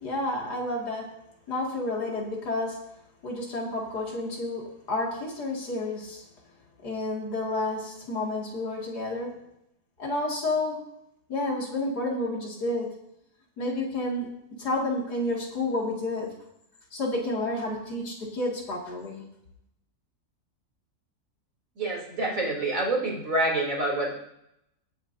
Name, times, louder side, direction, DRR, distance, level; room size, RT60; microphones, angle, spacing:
voice 1, 0.0-1.0 1.5-2.8 3.2-6.2 6.8-9.3 10.0-10.8 11.3-12.9 13.6-14.3 14.6-16.3 16.9-19.2, left 2 dB, 85° left, -2 dB, 2.9 m, -30 dB
voice 2, 21.8-24.1, right 2 dB, 55° right, -3 dB, 3.6 m, -27 dB
18.5 x 9.2 x 2.7 m, 0.79 s
omnidirectional pair, 1.7 m